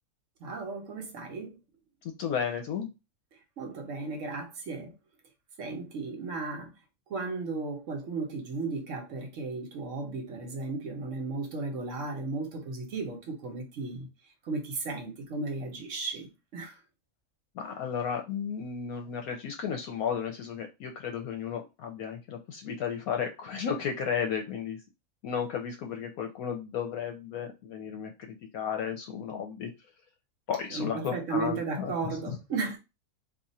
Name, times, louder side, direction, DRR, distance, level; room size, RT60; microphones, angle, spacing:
voice 1, 0.4-1.6 3.6-4.9 5.6-6.7 7.1-14.1 14.5-16.7 30.7-32.8, right 3 dB, 60° right, 1.2 m, -35 dB
voice 2, 2.0-2.9 17.6-24.8 25.2-29.7 30.5-32.4, left 7 dB, 75° left, 1.1 m, -34 dB
2.7 x 2.4 x 4.1 m
omnidirectional pair, 1.6 m